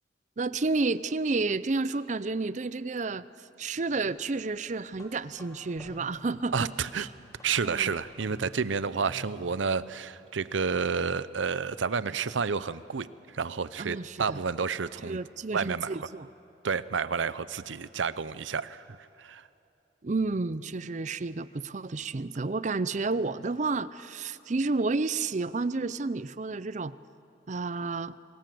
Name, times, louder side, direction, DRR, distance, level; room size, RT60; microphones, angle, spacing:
voice 1, 0.4-3.3 3.6-7.1 7.6-7.9 13.8-14.4 15.0-16.3 20.0-26.9 27.5-28.1, right 3 dB, 40° right, 16 dB, 0.5 m, -31 dB
sound 1, 4.9-9.7, equal, 20° left, 2.9 m, -50 dB
voice 2, 6.5-7.1 7.4-13.1 13.3-15.2 15.5-16.0 16.6-19.4, right 5 dB, 90° right, 16 dB, 0.7 m, -30 dB
28.0 x 19.5 x 7.7 m, 2.7 s
head